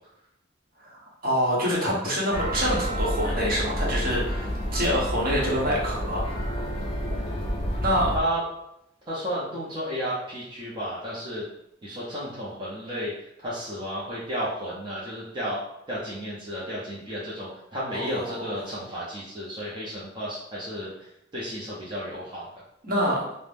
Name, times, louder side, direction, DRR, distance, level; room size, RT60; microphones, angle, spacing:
voice 1, 1.2-6.2 7.8-8.1 17.9-18.3 22.8-23.2, equal, 50° right, -5 dB, 0.8 m, -26 dB
sound 1, 2.3-8.2, equal, 30° left, 0.5 m, -29 dB
voice 2, 9.1-11.5 11.8-15.6 15.9-20.9 21.3-22.5, equal, 25° right, -8 dB, 0.5 m, -32 dB
2.4 x 2.0 x 3.3 m, 0.80 s
head